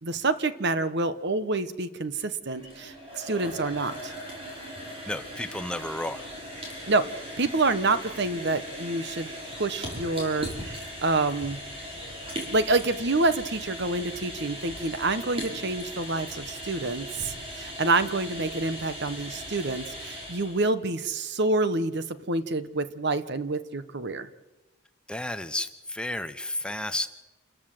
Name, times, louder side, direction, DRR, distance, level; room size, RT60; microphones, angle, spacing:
voice 1, 0.0-4.1 6.9-7.1 7.4-9.3 9.6-11.6 12.5-24.3, right 3 dB, 55° right, 12 dB, 1.1 m, -27 dB
sound 1, 2.4-20.7, equal, 25° right, 5.9 m, -39 dB
voice 2, 5.1-6.2 25.1-27.1, left 1 dB, 5° left, 10 dB, 0.7 m, -32 dB
28.0 x 14.0 x 7.7 m, 1.1 s
head